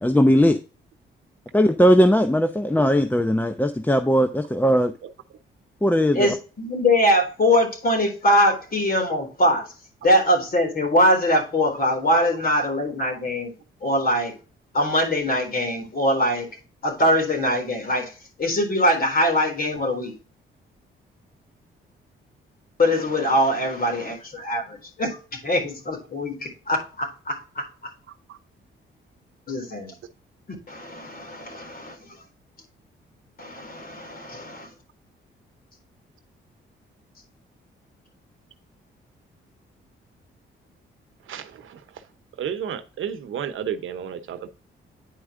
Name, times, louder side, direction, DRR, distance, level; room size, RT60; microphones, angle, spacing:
voice 1, 0.0-0.6 1.5-4.9 5.8-6.3, equal, 10° left, 8 dB, 0.7 m, -18 dB
voice 2, 6.1-9.7 10.0-13.5 13.8-14.3 14.7-16.5 16.8-18.1 18.4-20.1 22.8-25.2 25.4-27.7 29.5-29.9 30.7-32.2 33.4-34.7, left 1 dB, 45° left, 2 dB, 3.9 m, -22 dB
voice 3, 41.3-41.8 42.4-44.5, right 8 dB, 75° right, 11 dB, 1.0 m, -32 dB
9.8 x 4.6 x 3.7 m, 0.33 s
cardioid pair, 70°, 21 cm